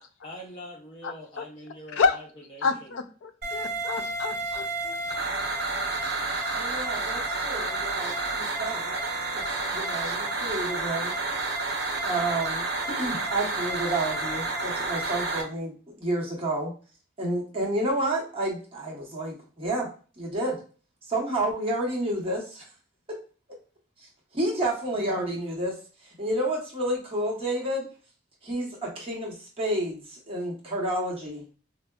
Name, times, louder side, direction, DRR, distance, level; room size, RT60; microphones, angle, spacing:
voice 1, 0.2-2.9, equal, 30° left, -1 dB, 0.4 m, -43 dB
voice 2, 1.0-1.5 1.9-2.2 2.6-5.2, left 4 dB, 85° left, 10 dB, 0.4 m, -29 dB
sound 1, 3.4-15.4, right 3 dB, 55° right, 0.8 m, -30 dB
voice 3, 6.5-9.0 9.7-11.2 12.0-16.7 17.2-19.9 20.2-20.6 21.1-22.6 23.1-23.2 24.0-24.1 24.3-25.8 26.0-27.9 28.4-31.4, right 1 dB, 30° right, -2 dB, 0.8 m, -30 dB
4.4 x 2.0 x 2.2 m, 0.38 s
head